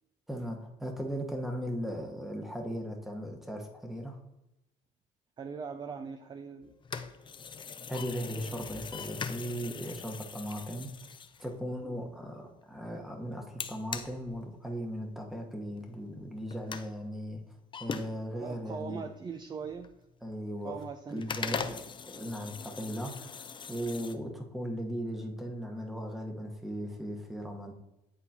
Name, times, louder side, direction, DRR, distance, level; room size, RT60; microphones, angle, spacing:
voice 1, 0.3-4.2 7.9-10.9 11.4-17.4 17.8-19.0 20.2-20.8 21.1-27.7, equal, ahead, 2 dB, 1.1 m, -37 dB
voice 2, 5.4-6.7 11.8-12.0 18.4-19.9 20.6-21.8, right 5 dB, 25° right, 7 dB, 0.4 m, -41 dB
sound 1, 6.6-12.0 13.6-15.0 15.3-15.4 15.8-15.9 16.2-16.9 17.7-18.7 19.1-20.3 20.7-20.8 21.1-24.1, left 6 dB, 30° left, 0.5 m, -41 dB
9.9 x 4.0 x 2.8 m, 0.94 s
cardioid pair, 110°, 17 cm